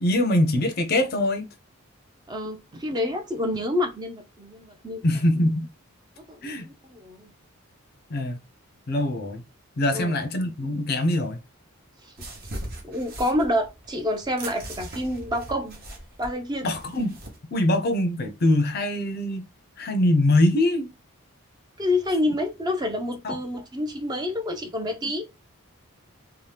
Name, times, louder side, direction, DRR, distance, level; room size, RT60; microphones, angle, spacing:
voice 1, 0.0-1.5 5.0-5.7 6.4-6.7 8.1-8.4 8.9-9.4 9.8-11.4 16.6-17.2 17.5-19.4 19.8-20.9 23.2-23.4, left 1 dB, 45° left, 0.5 m, -23 dB
voice 2, 2.3-5.0 6.2-7.3 9.9-10.2 12.0-12.1 12.8-15.8 16.2-16.7 21.8-25.2, left 1 dB, 20° right, 0.5 m, -28 dB
sound 1, 12.2-17.4, right 1 dB, 45° right, 0.8 m, -39 dB
2.8 x 2.1 x 3.3 m
head